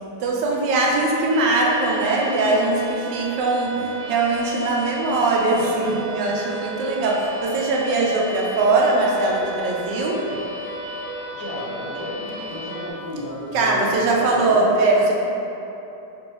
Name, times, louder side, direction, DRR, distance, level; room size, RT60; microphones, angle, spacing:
voice 1, 0.2-10.3 13.5-15.1, right 2 dB, 85° right, -2 dB, 1.3 m, -21 dB
sound 1, 1.3-12.9, right 2 dB, 60° right, 1.4 m, -34 dB
voice 2, 11.2-14.7, left 1 dB, 75° left, -5 dB, 1.3 m, -33 dB
5.1 x 2.5 x 3.3 m, 3.0 s
omnidirectional pair, 1.8 m